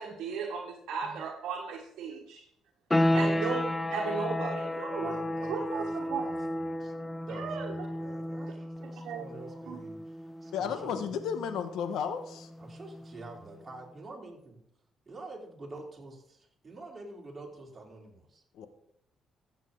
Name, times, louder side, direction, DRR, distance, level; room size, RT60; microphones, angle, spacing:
voice 1, 0.0-2.5 3.1-6.3 7.3-7.7 9.0-9.3 9.7-9.8, right 6 dB, 80° right, 0 dB, 1.4 m, -36 dB
sound 1, 2.9-13.4, left 1 dB, 15° left, 0.7 m, -33 dB
voice 2, 3.1-3.4 4.9-6.9 7.3-11.2 12.6-14.6 15.1-18.4, right 2 dB, 30° right, -2 dB, 3.7 m, -47 dB
voice 3, 10.5-12.5 18.5-18.7, left 7 dB, 80° left, 9 dB, 1.2 m, -33 dB
14.5 x 8.2 x 3.9 m, 0.74 s
cardioid pair, 90°, 0 cm